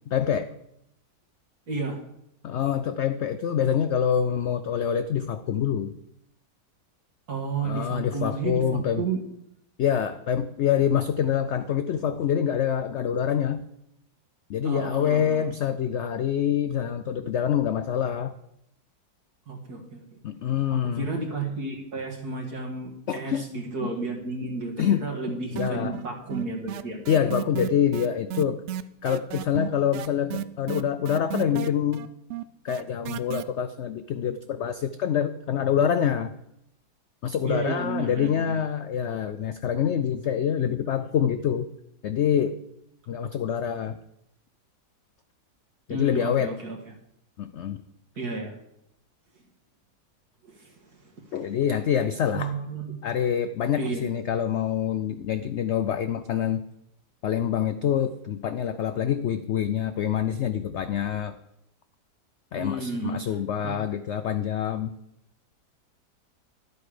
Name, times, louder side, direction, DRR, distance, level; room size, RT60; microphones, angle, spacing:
voice 1, 0.1-0.5 2.4-6.0 7.6-9.0 9.8-13.7 14.5-18.4 20.2-21.1 23.1-23.5 23.8-23.9 24.8-25.1 25.5-25.9 27.1-28.6 29.0-32.1 32.6-36.3 37.2-41.7 42.0-42.6 43.1-44.0 45.9-46.5 47.4-47.8 51.3-52.5 53.0-56.6 57.2-61.3 62.5-64.9, left 9 dB, 85° left, 11 dB, 0.6 m, -26 dB
voice 2, 1.7-2.0 7.3-9.2 14.6-15.5 19.5-20.2 20.7-27.0 37.4-38.5 45.9-46.8 48.2-48.6 50.4-50.7 51.0-51.1 52.3-53.0 53.8-54.1 62.6-63.2 63.6-63.8, right 3 dB, 65° right, 0 dB, 2.3 m, -32 dB
sound 1, 25.6-26.1 26.3-33.4, right 11 dB, 85° right, 0.6 m, -32 dB
12.0 x 8.2 x 5.0 m, 0.80 s
omnidirectional pair, 1.8 m